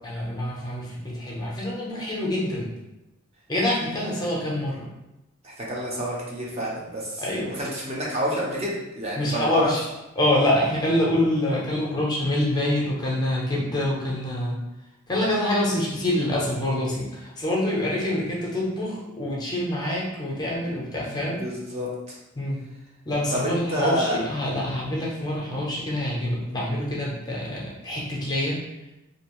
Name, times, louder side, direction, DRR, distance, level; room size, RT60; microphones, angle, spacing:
voice 1, 0.0-2.7 3.5-4.9 7.2-7.5 9.2-9.8 10.2-14.6 15.1-21.4 22.4-22.6 23.0-28.6, left 1 dB, 20° left, -5 dB, 0.6 m, -26 dB
voice 2, 3.9-4.3 5.4-9.7 21.4-22.2 23.3-24.2, equal, 30° right, -4 dB, 0.6 m, -29 dB
2.6 x 2.5 x 2.9 m, 0.95 s
head